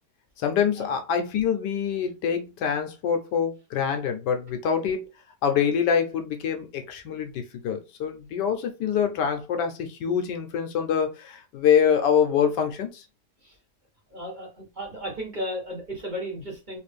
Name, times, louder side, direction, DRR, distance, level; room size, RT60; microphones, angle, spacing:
voice 1, 0.4-5.1 5.4-7.3 7.6-13.0, left 7 dB, 80° left, 1.3 m, -25 dB
voice 2, 14.1-16.8, equal, 30° right, 1.2 m, -34 dB
3.4 x 2.5 x 3.3 m
omnidirectional pair, 1.8 m